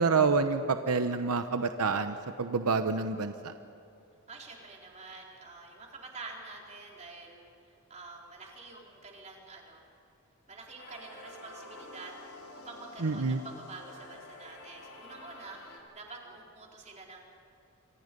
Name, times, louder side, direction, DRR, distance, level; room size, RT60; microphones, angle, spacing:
voice 1, 0.0-3.5 13.0-13.4, right 4 dB, 85° right, 8 dB, 0.9 m, -28 dB
voice 2, 4.3-9.8 10.5-12.2 12.5-17.2, right 3 dB, 30° right, -1 dB, 4.2 m, -48 dB
sound 1, 10.8-15.8, left 2 dB, 75° left, 4.4 m, -49 dB
28.5 x 25.0 x 5.4 m, 2.7 s
head